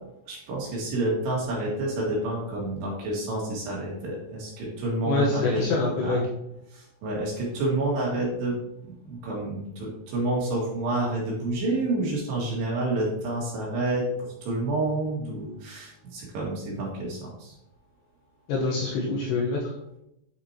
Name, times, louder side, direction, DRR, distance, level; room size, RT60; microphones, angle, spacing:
voice 1, 0.3-5.6 6.0-6.2 6.7-8.6 8.9-14.1 14.4-17.5, right 2 dB, 65° right, -4 dB, 3.8 m, -29 dB
voice 2, 5.0-6.3 18.5-19.7, left 3 dB, 75° left, -2 dB, 2.9 m, -25 dB
9.4 x 6.6 x 2.9 m, 0.80 s
omnidirectional pair, 5.8 m